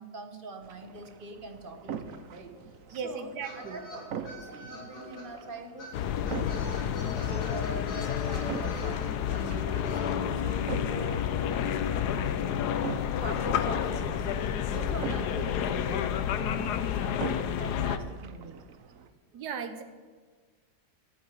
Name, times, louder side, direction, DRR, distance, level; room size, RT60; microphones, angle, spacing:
voice 1, 0.0-2.6 2.9-12.8 13.2-14.4 14.7-17.2 17.6-18.5, right 2 dB, 35° right, 6 dB, 1.3 m, -44 dB
sound 1, 0.6-19.1, right 7 dB, 60° right, 1.2 m, -44 dB
sound 2, 1.7-1.8 1.9-5.2 5.8-5.9 6.2-10.1, equal, 55° left, 4.1 m, -44 dB
voice 2, 2.9-3.8 15.4-15.5 19.3-19.8, right 6 dB, 80° right, 8 dB, 1.5 m, -37 dB
sound 3, 5.9-18.0, left 9 dB, 75° left, 1.3 m, -30 dB
11.0 x 8.7 x 8.7 m, 1.5 s
omnidirectional pair, 1.7 m